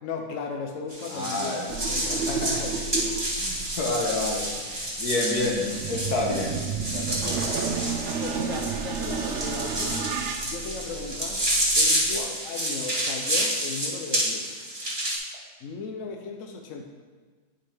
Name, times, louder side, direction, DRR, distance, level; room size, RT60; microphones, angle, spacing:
voice 1, 0.0-3.2 8.2-11.5 11.8-14.6 15.6-16.8, left 4 dB, 65° left, 3 dB, 1.0 m, -36 dB
sound 1, 0.9-15.2, right 1 dB, 15° right, 1.4 m, -29 dB
voice 2, 1.1-1.7 2.3-2.6 3.3-6.6 6.9-7.6 12.1-12.3, left 2 dB, 80° left, -1 dB, 1.7 m, -29 dB
sound 2, 1.7-12.2, right 6 dB, 65° right, 0.7 m, -32 dB
10.5 x 5.0 x 3.5 m, 1.4 s
omnidirectional pair, 1.6 m